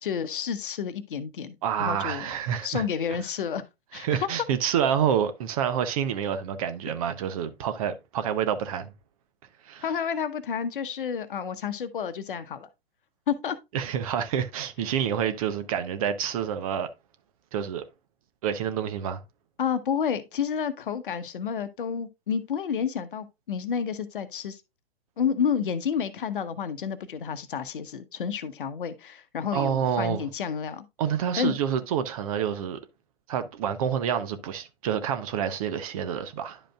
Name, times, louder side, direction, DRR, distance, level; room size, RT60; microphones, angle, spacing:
voice 1, 0.0-2.3 2.6-3.6 3.9-4.3 9.8-12.7 13.3-13.6 19.6-24.6 25.2-30.8 31.4-31.6, left 7 dB, 55° left, 0.9 m, -30 dB
voice 2, 1.6-2.8 3.9-8.9 9.6-9.8 13.7-16.9 17.5-17.8 18.4-19.2 29.5-30.3 31.0-32.8 33.3-36.6, right 8 dB, 35° right, 0.7 m, -28 dB
10.5 x 5.0 x 2.3 m
figure-of-eight pair, 115°, 31 cm